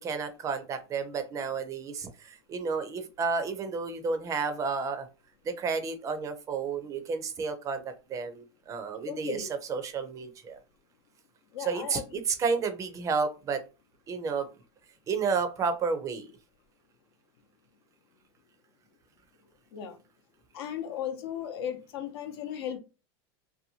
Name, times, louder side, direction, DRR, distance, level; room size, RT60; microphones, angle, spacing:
voice 1, 0.0-5.1 5.4-10.6 11.6-13.6 14.1-14.5 15.1-16.3, right 5 dB, 25° right, 0.5 m, -31 dB
voice 2, 9.1-9.5 11.5-12.2 19.7-20.0 20.5-22.8, left 9 dB, 80° left, 0.7 m, -36 dB
2.7 x 2.2 x 2.7 m
supercardioid pair, 140°, 13 cm